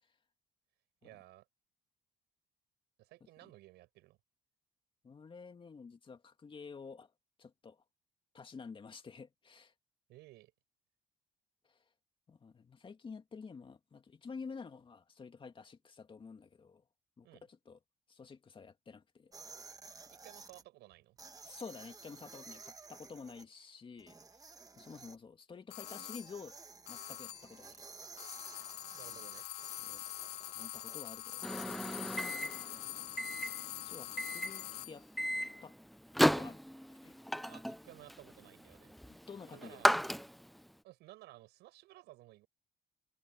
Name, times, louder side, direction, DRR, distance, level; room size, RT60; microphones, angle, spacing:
voice 1, 1.0-1.5 3.0-4.2 10.1-10.5 17.2-17.4 20.1-21.2 28.9-29.5 37.4-38.9 39.4-39.9 40.8-42.5, right 17 dB, 85° right, 7.8 m, -56 dB
voice 2, 5.0-7.1 7.4-7.8 8.3-9.7 11.6-11.8 12.3-16.8 17.2-17.8 18.1-19.3 21.4-24.2 24.8-26.6 26.9-27.8 29.1-29.3 29.8-30.1 30.5-32.1 33.8-35.1 35.6-35.8 36.2-36.6 36.9-37.1 39.1-39.9, left 5 dB, 30° left, 2.4 m, -50 dB
sound 1, 19.3-20.6 21.2-23.4 24.0-25.2 25.8-31.7, right 4 dB, 20° right, 1.3 m, -54 dB
sound 2, 25.7-26.4 26.9-27.6 28.2-35.0, left 15 dB, 80° left, 2.2 m, -44 dB
Microwave oven, 31.4-40.7, equal, ahead, 0.4 m, -35 dB
cardioid pair, 110°, 17 cm